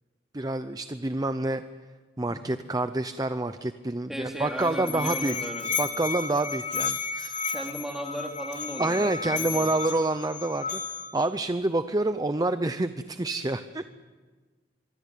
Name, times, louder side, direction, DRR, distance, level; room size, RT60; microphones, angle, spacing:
voice 1, 0.3-1.6 2.2-5.5 5.8-7.5 8.8-13.9, right 2 dB, 20° right, 10 dB, 0.7 m, -28 dB
voice 2, 4.1-5.7 7.5-9.7, equal, 5° right, 1 dB, 3.3 m, -36 dB
Musical instrument, 4.3-11.3, left 5 dB, 45° left, 3.4 m, -33 dB
24.5 x 24.5 x 8.5 m, 1.4 s
head